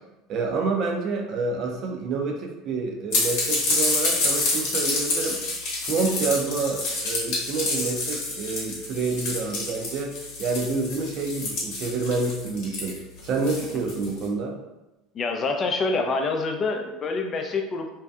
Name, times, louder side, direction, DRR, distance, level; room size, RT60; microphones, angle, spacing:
voice 1, 0.3-5.4 5.8-13.0 13.2-14.6, right 3 dB, 55° right, 2 dB, 0.5 m, -28 dB
sound 1, 3.1-14.2, left 2 dB, 70° left, 0.9 m, -28 dB
voice 2, 15.1-17.9, left 3 dB, 40° left, 4 dB, 0.3 m, -26 dB
2.6 x 2.3 x 2.3 m, 1.0 s
hypercardioid pair, 85°, 0 cm